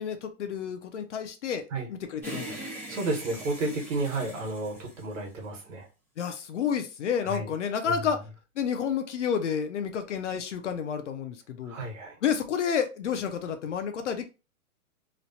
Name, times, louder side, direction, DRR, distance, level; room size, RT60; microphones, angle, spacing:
voice 1, 0.0-1.6 1.9-2.6 6.2-8.2 8.6-11.7 12.2-14.2, left 7 dB, 55° left, 7 dB, 0.5 m, -30 dB
sound 1, 2.2-5.7, right 1 dB, 5° right, 0.4 m, -41 dB
voice 2, 2.7-5.9 7.2-7.5 7.8-7.9 11.6-12.2, right 2 dB, 55° right, 0 dB, 1.2 m, -32 dB
3.1 x 2.0 x 2.6 m, 0.30 s
hypercardioid pair, 170°, 44 cm